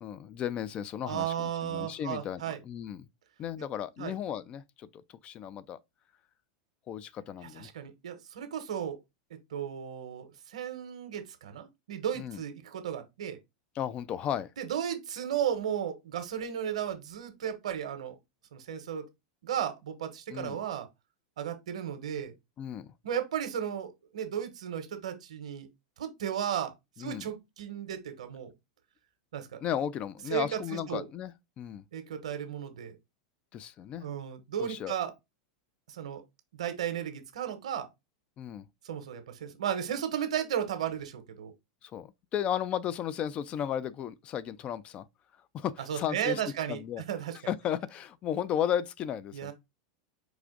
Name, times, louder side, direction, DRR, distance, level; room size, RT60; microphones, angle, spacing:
voice 1, 0.0-3.1 3.4-5.8 6.9-7.7 12.1-12.4 13.8-14.5 20.3-20.6 22.6-22.9 27.0-27.3 29.6-31.8 33.5-34.1 34.6-34.9 38.4-38.7 41.8-45.1 45.5-46.4 46.7-47.0 47.5-49.5, left 9 dB, 35° left, 0.4 m, -34 dB
voice 2, 1.0-2.6 4.0-4.1 7.6-9.0 9.3-13.4 14.6-18.1 18.5-19.1 19.4-20.9 21.4-22.3 23.0-25.7 26.0-26.7 27.0-28.5 29.3-29.6 30.3-30.6 30.9-31.1 31.9-33.0 34.0-35.1 35.9-36.2 36.5-37.9 38.8-41.5 45.9-46.8 47.1-47.4 49.3-49.5, right 9 dB, 85° right, 1.0 m, -34 dB
4.8 x 2.5 x 3.7 m
hypercardioid pair, 115°, 3 cm